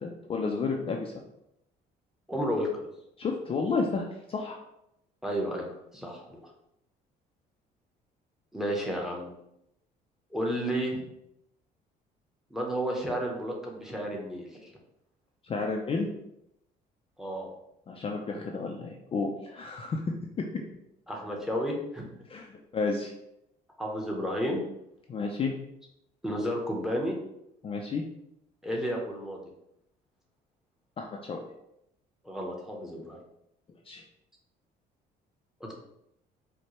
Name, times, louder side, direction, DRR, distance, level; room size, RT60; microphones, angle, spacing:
voice 1, 0.0-1.1 3.2-4.6 15.4-16.1 17.9-20.0 22.3-23.1 25.1-25.5 27.6-28.0 31.0-31.4 33.9-34.0, left 4 dB, 35° left, 1 dB, 0.4 m, -31 dB
voice 2, 2.3-2.9 5.2-5.7 5.9-6.4 8.5-9.3 10.3-11.0 12.5-14.7 17.2-17.5 21.1-22.1 23.8-24.6 26.2-27.1 28.6-29.4 32.2-33.2 35.6-35.7, equal, 5° right, -1 dB, 0.8 m, -32 dB
4.4 x 2.1 x 3.0 m, 0.81 s
cardioid pair, 110°, 17 cm